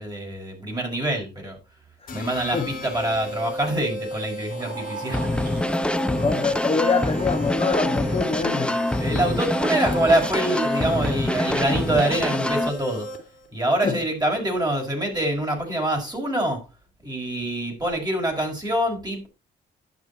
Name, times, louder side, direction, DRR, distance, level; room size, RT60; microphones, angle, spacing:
voice 1, 0.0-1.6 2.1-5.3 9.0-13.1 13.5-16.6 17.0-19.3, right 1 dB, 20° right, 5.3 m, -25 dB
sound 1, 2.1-13.5, left 1 dB, 45° left, 3.4 m, -35 dB
sound 2, 4.4-11.0, right 4 dB, 55° right, 7.0 m, -40 dB
sound 3, 5.1-12.7, left 1 dB, 5° left, 0.7 m, -25 dB
voice 2, 6.1-8.8 13.8-14.0, left 4 dB, 30° left, 1.6 m, -24 dB
11.0 x 7.1 x 4.1 m
cardioid pair, 90°, 20 cm